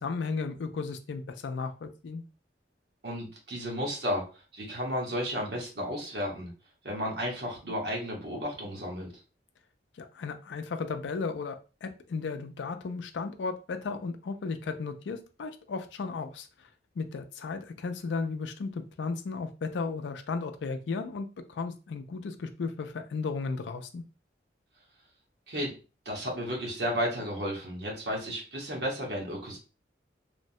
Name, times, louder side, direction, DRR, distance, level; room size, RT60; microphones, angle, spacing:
voice 1, 0.0-2.2 10.0-11.6 11.8-16.7 17.0-24.0, left 4 dB, 80° left, 8 dB, 0.4 m, -35 dB
voice 2, 3.0-4.2 4.5-6.5 6.8-9.1 25.5-25.7 26.0-29.6, equal, 65° right, -1 dB, 1.1 m, -33 dB
3.2 x 2.1 x 2.6 m, 0.33 s
head